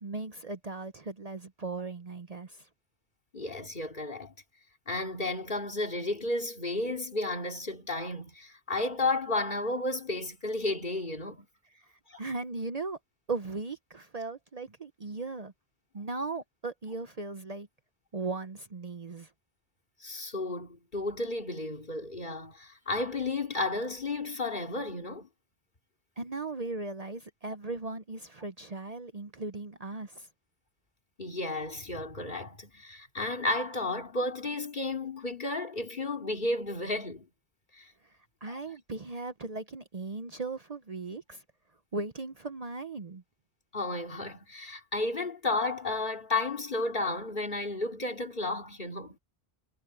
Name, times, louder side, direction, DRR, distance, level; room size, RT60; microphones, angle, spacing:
voice 1, 0.0-2.7 11.8-11.9 12.2-13.0 13.3-15.5 15.9-17.7 18.1-19.3 26.2-30.3 38.4-41.4 41.9-43.2, right 3 dB, 40° right, 0.9 m, -37 dB
voice 2, 3.3-4.3 4.9-11.5 12.1-12.2 20.0-25.3 31.2-37.3 37.7-37.9 38.5-38.6 43.7-49.2, left 2 dB, 50° left, 3.0 m, -33 dB
omnidirectional pair, 1.1 m